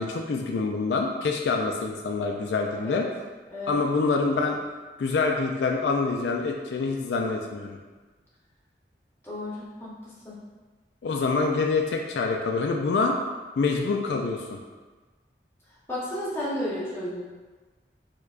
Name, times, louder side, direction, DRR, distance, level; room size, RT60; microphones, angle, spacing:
voice 1, 0.0-3.1 3.7-4.6 5.0-7.7 11.0-13.2 13.6-14.6, left 4 dB, 80° left, 2 dB, 0.3 m, -26 dB
voice 2, 9.2-10.4 15.9-17.2, left 1 dB, 15° left, -8 dB, 0.8 m, -33 dB
4.5 x 2.2 x 2.4 m, 1.3 s
head